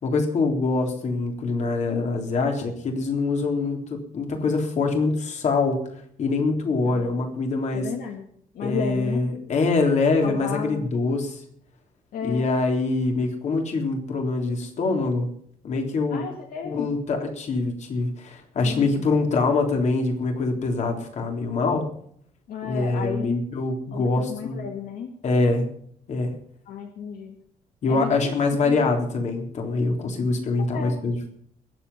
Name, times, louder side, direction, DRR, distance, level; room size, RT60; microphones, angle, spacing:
voice 1, 0.0-5.8 6.2-7.9 8.6-11.4 12.2-15.3 15.6-16.3 16.6-21.9 22.6-24.7 25.2-25.7 26.1-26.3 27.8-31.3, left 3 dB, 55° left, 3 dB, 3.6 m, -24 dB
voice 2, 6.8-7.2 7.7-8.3 8.6-9.2 10.2-10.9 12.1-12.4 16.1-16.9 18.6-18.9 22.5-23.4 23.9-25.1 26.7-27.4 27.9-28.1 30.7-31.0, left 7 dB, 75° left, 4 dB, 1.9 m, -32 dB
21.5 x 8.0 x 5.6 m, 0.62 s
cardioid pair, 150°, 15 cm